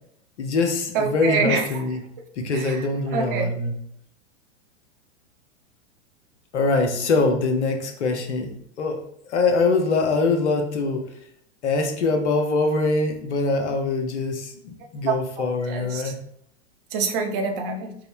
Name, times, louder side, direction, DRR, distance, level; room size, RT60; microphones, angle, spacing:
voice 1, 0.4-2.0 2.4-3.8 6.5-9.0 9.3-11.0 11.6-16.2, left 3 dB, 70° left, 4 dB, 0.9 m, -23 dB
voice 2, 0.9-1.8 2.5-2.8 3.1-3.5 15.1-15.2 15.7-16.1 16.9-17.9, right 5 dB, 50° right, 4 dB, 0.8 m, -25 dB
4.7 x 2.1 x 4.4 m, 0.72 s
figure-of-eight pair, 95°, 35 cm